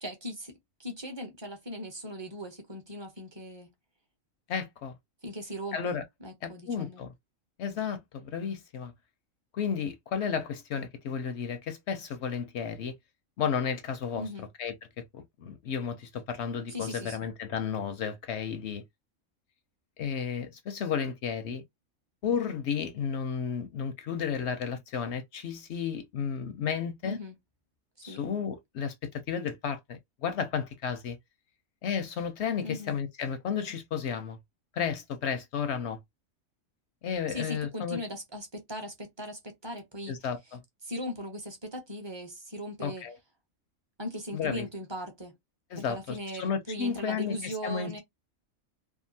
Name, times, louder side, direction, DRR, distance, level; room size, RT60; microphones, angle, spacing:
voice 1, 0.0-0.5 0.8-3.7 5.2-7.0 14.2-14.5 16.7-17.2 27.0-27.3 28.0-28.2 32.6-33.0 37.3-40.1 40.8-43.0 44.0-45.3 45.8-48.0, equal, 25° right, 0.6 m, -39 dB
voice 2, 4.5-4.9 5.7-6.0 6.4-7.1 7.6-8.9 9.5-12.9 13.4-14.3 14.6-18.8 20.0-21.6 22.2-27.2 28.0-31.2 31.8-34.4 34.7-36.0 37.0-38.0 40.1-40.6 42.8-43.2 44.3-44.7 45.7-48.0, left 7 dB, 65° left, 0.7 m, -33 dB
2.7 x 2.4 x 2.6 m
omnidirectional pair, 1.4 m